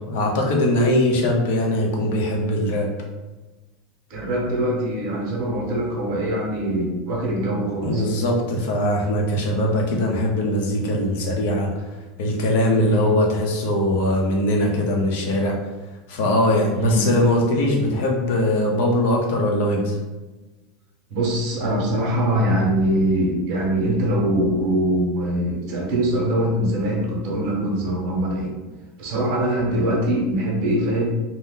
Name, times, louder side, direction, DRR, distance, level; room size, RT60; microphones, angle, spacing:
voice 1, 0.1-2.9 7.8-11.9 12.2-15.6 16.1-20.0, left 1 dB, 60° left, 0 dB, 0.7 m, -21 dB
voice 2, 4.1-8.1 12.8-13.2 16.7-17.1 21.1-28.5 29.0-31.1, right 1 dB, 40° right, -1 dB, 0.8 m, -23 dB
2.7 x 2.1 x 3.6 m, 1.2 s
supercardioid pair, 180°, 0 cm